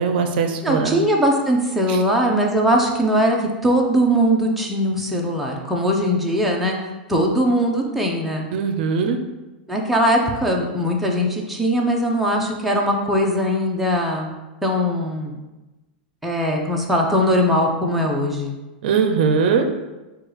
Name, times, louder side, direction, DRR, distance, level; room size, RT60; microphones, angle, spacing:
voice 1, 0.0-1.0 1.9-2.0 8.5-9.2 18.8-19.7, right 5 dB, 65° right, 6 dB, 0.5 m, -20 dB
voice 2, 0.6-6.8 7.1-8.5 9.7-14.3 14.6-15.4 16.2-18.5, equal, ahead, -2 dB, 0.5 m, -20 dB
4.6 x 2.3 x 4.7 m, 1.1 s
supercardioid pair, 140°, 5 cm